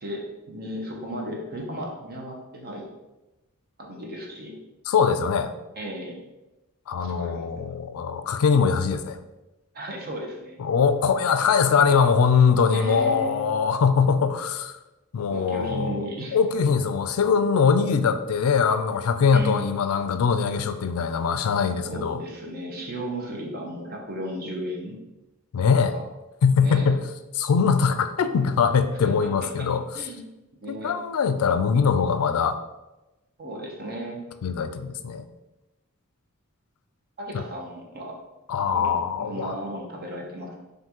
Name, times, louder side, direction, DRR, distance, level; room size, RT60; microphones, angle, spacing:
voice 1, 0.0-2.9 3.8-4.5 5.8-6.2 7.0-7.7 9.7-10.6 12.7-13.5 15.3-16.4 19.3-19.9 21.9-25.0 25.9-26.0 26.6-26.9 29.0-29.3 29.6-29.7 29.9-30.2 30.6-30.9 33.4-34.2 37.2-38.1 38.7-38.9 39.2-40.6, right 1 dB, 45° right, -1 dB, 0.9 m, -35 dB
voice 2, 4.9-5.5 6.9-9.2 10.6-14.7 15.1-16.0 16.3-22.2 25.5-26.0 26.4-27.0 27.3-29.8 30.7-32.6 34.4-35.2 37.3-37.4 38.5-39.6, left 6 dB, 85° left, 10 dB, 0.4 m, -22 dB
5.8 x 2.6 x 3.0 m, 1.0 s
head